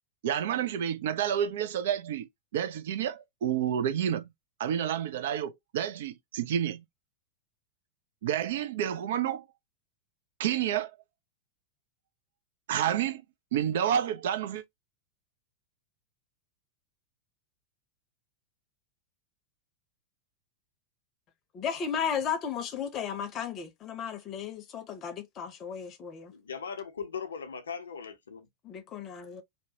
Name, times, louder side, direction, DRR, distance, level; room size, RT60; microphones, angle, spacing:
voice 1, 0.2-4.3 4.6-6.8 8.2-9.4 10.4-10.9 12.7-13.2 13.5-14.6, right 9 dB, 55° right, 0.4 m, -29 dB
voice 2, 21.5-26.3 28.6-29.4, left 7 dB, 30° left, 0.7 m, -34 dB
voice 3, 26.3-28.5, left 6 dB, 70° left, 0.6 m, -39 dB
2.8 x 2.1 x 2.7 m
figure-of-eight pair, 90°, 0 cm